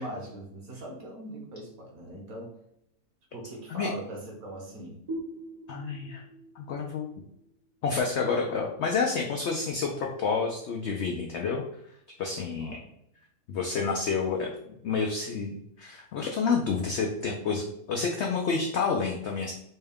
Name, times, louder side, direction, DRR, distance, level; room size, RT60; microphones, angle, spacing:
voice 1, 0.0-2.6 3.3-5.0 12.5-12.8, right 1 dB, 65° right, 0 dB, 1.4 m, -40 dB
sound 1, 5.1-8.5, right 1 dB, 40° right, 0.6 m, -42 dB
voice 2, 5.7-6.2 6.6-7.1 7.8-11.6 12.2-12.8 13.5-19.5, left 5 dB, 90° left, 1 dB, 0.6 m, -29 dB
4.3 x 2.2 x 3.5 m, 0.76 s
omnidirectional pair, 1.7 m